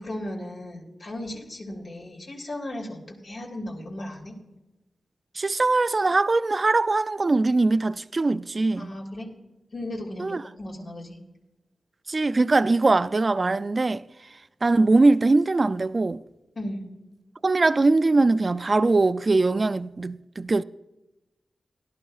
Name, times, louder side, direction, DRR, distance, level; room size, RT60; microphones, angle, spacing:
voice 1, 0.0-4.3 8.8-9.3 9.7-11.2 16.5-16.8, left 1 dB, 70° left, 2.7 m, -36 dB
voice 2, 5.4-8.9 10.2-10.4 12.1-14.0 14.6-16.2 17.4-20.6, right 3 dB, 45° right, 0.3 m, -21 dB
17.5 x 11.5 x 2.4 m
cardioid pair, 55°, 0 cm